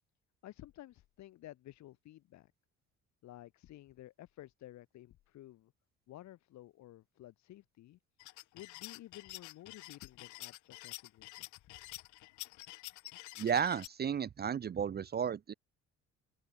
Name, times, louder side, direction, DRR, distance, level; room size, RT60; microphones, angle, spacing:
voice 1, 0.4-2.5 3.2-5.7 6.1-11.5, left 14 dB, 70° left, 2.0 m, -53 dB
sound 1, 8.2-13.9, left 20 dB, 90° left, 0.9 m, -48 dB
voice 2, 13.4-15.5, right 7 dB, 35° right, 0.7 m, -33 dB
open air
cardioid pair, 110°, 29 cm